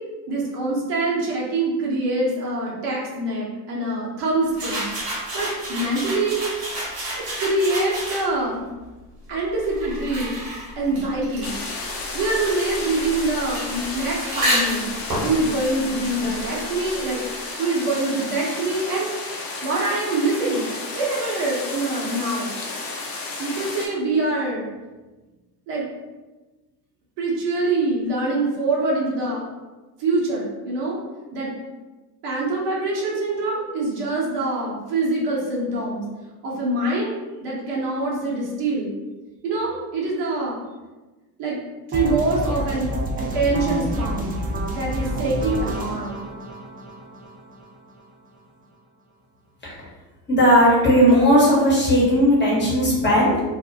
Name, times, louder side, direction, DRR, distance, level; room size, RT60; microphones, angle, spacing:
voice 1, 0.3-4.9 5.3-6.4 7.4-8.7 9.3-10.3 10.8-11.5 12.1-14.9 15.2-17.3 17.6-19.1 19.6-22.5 23.4-24.7 25.7-25.9 27.2-29.4 30.0-31.0 31.3-31.5 32.2-36.1 36.4-37.1 37.4-38.9 39.4-40.6 41.4-41.6 41.9-42.9 43.2-44.3 44.7-46.2, right 2 dB, 60° right, -4 dB, 0.9 m, -24 dB
sound 1, 4.5-8.5 9.3-16.7, equal, 90° right, 0.9 m, -30 dB
sound 2, 11.4-23.9, left 3 dB, 50° left, 0.7 m, -32 dB
sound 3, 41.9-47.9, equal, 20° right, 0.4 m, -28 dB
voice 2, 50.3-53.4, equal, 25° left, -5 dB, 1.1 m, -16 dB
2.4 x 2.0 x 2.7 m, 1.2 s
hypercardioid pair, 65°, 47 cm